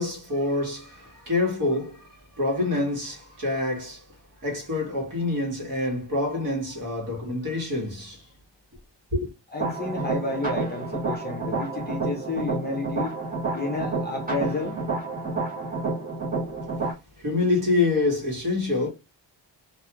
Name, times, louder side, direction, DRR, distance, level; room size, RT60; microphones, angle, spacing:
voice 1, 0.0-2.1 2.3-4.0 4.4-8.2 9.1-9.3 17.2-18.9, left 2 dB, 50° right, 1.2 m, -26 dB
voice 2, 9.5-13.2 13.5-14.8, left 3 dB, 25° left, 0.4 m, -31 dB
sound 1, 9.6-16.9, right 3 dB, 20° right, 0.8 m, -29 dB
2.3 x 2.3 x 2.8 m
wide cardioid pair, 180°, 42 cm